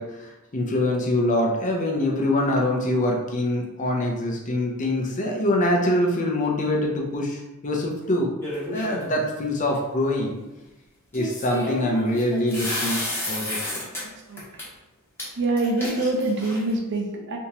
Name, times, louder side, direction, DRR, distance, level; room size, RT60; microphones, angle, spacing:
voice 1, 0.0-8.3 8.7-10.4 11.1-13.9, left 1 dB, 35° left, 0 dB, 0.6 m, -24 dB
sound 1, 8.4-9.2 11.1-14.0 14.4-14.6 15.2-15.3 15.6-16.7, left 1 dB, 10° left, 0.9 m, -31 dB
voice 2, 14.0-14.4 15.4-17.4, right 2 dB, 55° right, 1 dB, 0.6 m, -25 dB
3.5 x 2.9 x 2.9 m, 1.0 s
head